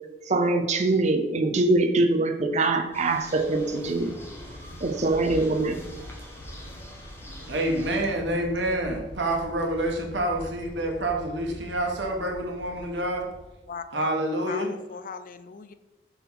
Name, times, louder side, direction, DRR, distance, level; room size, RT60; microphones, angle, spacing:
voice 1, 0.2-4.1 4.6-5.9, right 2 dB, 40° right, 5 dB, 0.6 m, -23 dB
sound 1, 2.9-13.9, equal, 70° left, 1.1 m, -44 dB
sound 2, 2.9-8.0, equal, 15° left, 1.2 m, -46 dB
voice 2, 7.5-13.3 13.9-14.8, right 1 dB, 75° right, 2 dB, 1.3 m, -27 dB
voice 3, 13.7-14.1 14.5-15.7, left 5 dB, 50° left, 11 dB, 0.4 m, -38 dB
5.6 x 4.2 x 5.7 m, 1.1 s
head